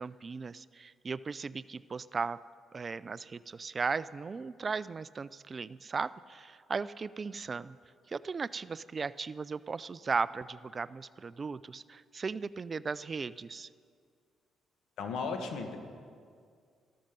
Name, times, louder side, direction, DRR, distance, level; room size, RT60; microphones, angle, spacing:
voice 1, 0.0-2.4 2.7-7.8 8.1-13.7, right 5 dB, 35° right, 18 dB, 0.3 m, -37 dB
voice 2, 15.0-15.8, left 4 dB, 80° left, 5 dB, 1.6 m, -35 dB
13.5 x 13.0 x 5.2 m, 2.1 s
cardioid pair, 90°, 0 cm